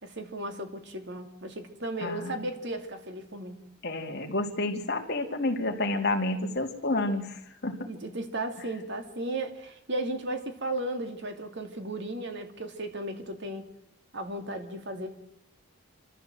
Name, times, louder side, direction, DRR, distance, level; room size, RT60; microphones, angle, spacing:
voice 1, 0.0-3.6 7.8-13.7 14.1-15.1, right 1 dB, 55° right, 6 dB, 2.8 m, -35 dB
voice 2, 2.0-2.3 3.8-7.8, left 2 dB, 50° left, 4 dB, 2.7 m, -30 dB
26.0 x 14.0 x 7.9 m, 0.82 s
head